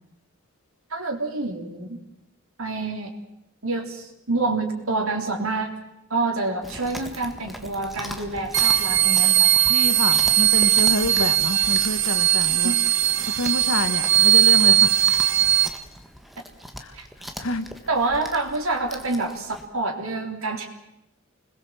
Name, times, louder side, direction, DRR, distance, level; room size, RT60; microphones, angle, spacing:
voice 1, 0.9-2.0 2.6-3.1 3.6-5.7 6.1-9.5 11.5-11.8 12.6-12.8 16.9-17.1 17.9-20.6, right 3 dB, 85° right, 2 dB, 3.7 m, -27 dB
Chewing mastication, 6.6-19.7, equal, ahead, 1.6 m, -40 dB
sound 1, 8.5-15.7, right 11 dB, 65° right, 1.3 m, -19 dB
voice 2, 9.7-12.7 13.3-14.9 16.8-16.9 17.4-17.7, left 1 dB, 75° left, 9 dB, 2.0 m, -27 dB
26.0 x 20.5 x 7.6 m, 0.86 s
head